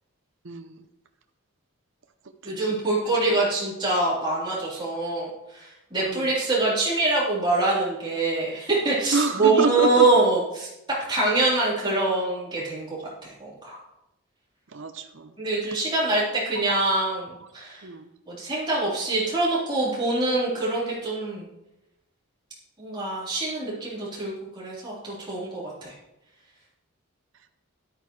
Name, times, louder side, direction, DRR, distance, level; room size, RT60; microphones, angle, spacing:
voice 1, 0.4-0.8 2.4-3.4 6.0-6.3 9.1-10.1 14.7-15.3 16.7-16.8 17.8-18.1, right 4 dB, 60° right, 7 dB, 0.6 m, -29 dB
voice 2, 2.4-13.0 13.4-13.8 15.4-17.8 18.3-21.5 22.8-25.9, right 2 dB, 20° right, -7 dB, 3.8 m, -25 dB
11.5 x 8.9 x 3.2 m, 0.89 s
head